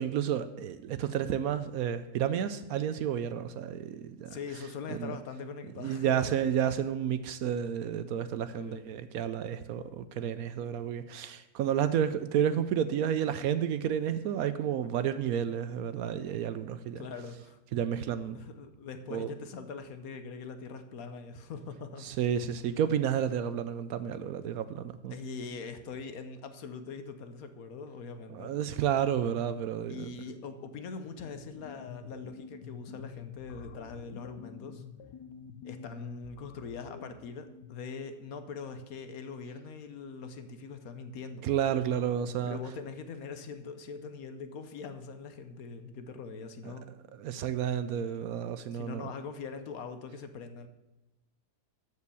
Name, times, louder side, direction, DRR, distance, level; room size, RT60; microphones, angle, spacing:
voice 1, 0.0-4.4 4.9-5.2 5.8-17.0 17.7-18.4 19.1-19.3 22.0-25.1 28.3-30.1 41.4-42.6 46.6-46.7 47.2-49.1, right 9 dB, 70° right, 12 dB, 0.9 m, -31 dB
voice 2, 4.3-6.4 8.5-8.8 17.0-17.6 18.3-22.1 25.1-28.5 29.9-34.8 35.6-41.4 42.4-46.9 48.7-50.7, left 5 dB, 65° left, 9 dB, 1.2 m, -42 dB
sound 1, 30.8-37.9, left 7 dB, 85° left, 1.3 m, -48 dB
13.5 x 5.0 x 6.9 m, 0.99 s
omnidirectional pair, 1.7 m